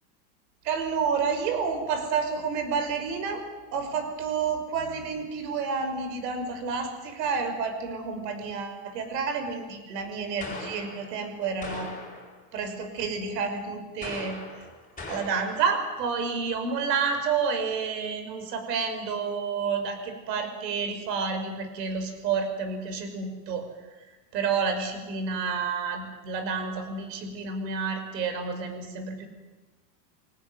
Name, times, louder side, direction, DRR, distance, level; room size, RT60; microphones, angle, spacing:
voice 1, 0.6-3.4 3.7-11.9 12.5-14.4 15.1-23.7 24.3-29.3, right 5 dB, 75° right, 7 dB, 5.9 m, -30 dB
sound 1, 10.4-11.2 11.6-12.4 14.0-15.8, left 3 dB, 15° left, 5.7 m, -40 dB
24.0 x 19.0 x 9.3 m, 1.2 s
supercardioid pair, 120°, 50 cm